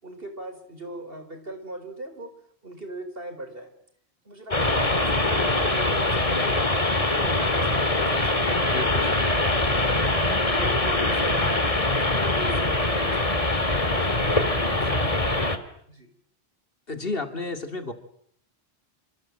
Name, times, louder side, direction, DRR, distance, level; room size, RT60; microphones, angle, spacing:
voice 1, 0.0-2.3 2.6-3.7 4.2-8.6 8.9-16.1, right 1 dB, 65° right, 7 dB, 5.1 m, -39 dB
sound 1, 4.5-15.6, left 2 dB, 35° left, 2.4 m, -23 dB
voice 2, 8.7-9.1 16.9-17.9, left 3 dB, 65° left, 7 dB, 3.0 m, -31 dB
28.5 x 27.0 x 7.7 m, 0.67 s
omnidirectional pair, 1.1 m